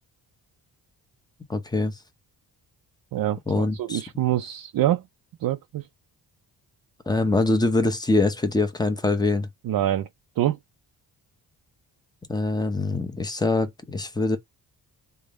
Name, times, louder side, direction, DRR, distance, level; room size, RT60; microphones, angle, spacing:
voice 1, 1.5-1.9 3.5-4.0 7.1-9.5 12.3-14.4, left 2 dB, 10° left, 0.7 m, -24 dB
voice 2, 3.1-5.0 5.4-5.9 9.6-10.1 10.4-10.6, right 13 dB, 60° right, 0.5 m, -25 dB
3.5 x 2.2 x 3.6 m
cardioid pair, 90°, 42 cm